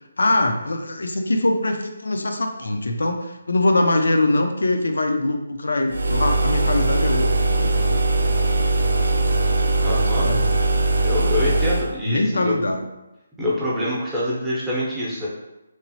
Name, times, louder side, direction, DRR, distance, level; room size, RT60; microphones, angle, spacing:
voice 1, 0.2-8.0 10.2-10.5 12.0-12.8, left 2 dB, 85° left, 4 dB, 0.3 m, -22 dB
sound 1, 5.9-11.9, right 2 dB, 80° right, 0.3 m, -20 dB
voice 2, 9.8-10.3 11.0-12.6 13.4-15.3, left 1 dB, 5° right, -9 dB, 0.6 m, -25 dB
2.9 x 2.0 x 2.7 m, 0.97 s
hypercardioid pair, 160°, 0 cm